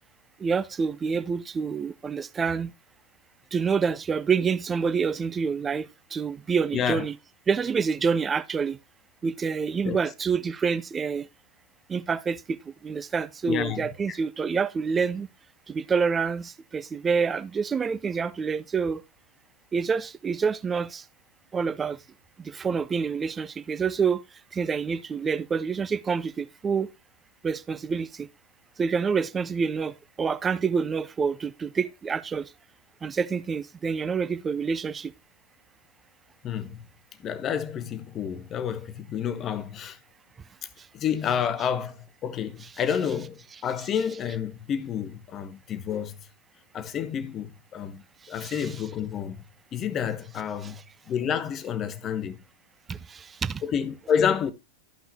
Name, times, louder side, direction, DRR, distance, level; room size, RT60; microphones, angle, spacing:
voice 1, 0.4-2.7 3.5-7.2 7.5-8.8 9.2-11.3 11.9-15.3 15.7-19.0 19.7-21.0 21.5-22.0 22.4-24.2 24.5-26.9 27.4-28.3 28.8-32.5 33.0-35.1 40.8-40.9 42.6-42.7 48.2-48.8 50.6-50.8 52.9-53.6, right 5 dB, 20° right, 0.7 m, -27 dB
voice 2, 6.7-7.0 9.8-10.0 13.5-14.2 36.4-36.8 37.2-40.0 40.9-46.2 46.7-48.0 48.3-49.4 49.7-50.8 51.1-52.4 53.6-54.5, left 8 dB, 30° left, 1.0 m, -29 dB
13.5 x 5.7 x 2.8 m
figure-of-eight pair, 90°, 0 cm